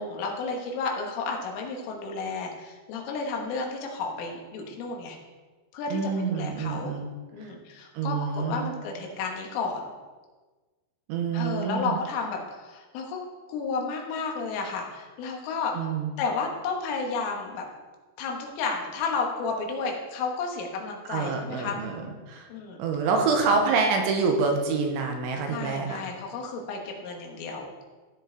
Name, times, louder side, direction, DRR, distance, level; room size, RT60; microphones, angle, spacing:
voice 1, 0.0-5.2 5.7-6.0 6.3-6.9 7.3-9.8 11.3-13.2 13.5-15.7 16.2-17.7 18.2-21.8 22.5-22.8 25.5-27.7, left 4 dB, 85° left, 1 dB, 3.9 m, -32 dB
voice 2, 5.9-7.1 7.4-7.5 7.9-8.7 11.1-12.0 15.7-16.1 21.1-22.0 22.3-22.5 22.8-26.0, right 4 dB, 80° right, 3 dB, 3.2 m, -26 dB
15.5 x 5.3 x 3.9 m, 1.3 s
omnidirectional pair, 5.7 m